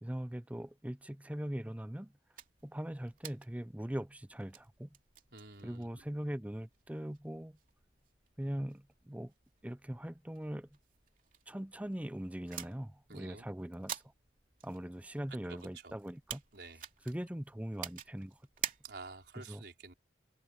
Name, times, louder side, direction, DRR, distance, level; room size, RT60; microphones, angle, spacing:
voice 1, 0.0-2.1 2.6-4.9 5.6-7.6 8.4-9.3 9.6-10.7 11.5-14.0 14.6-16.4 17.1-18.4 19.5-19.6, equal, 10° right, 0.5 m, -41 dB
sound 1, 2.3-19.3, right 9 dB, 50° right, 2.9 m, -50 dB
voice 2, 5.3-6.0 13.1-13.5 15.5-16.0 16.5-16.9 18.8-19.9, right 3 dB, 70° right, 4.7 m, -50 dB
open air
head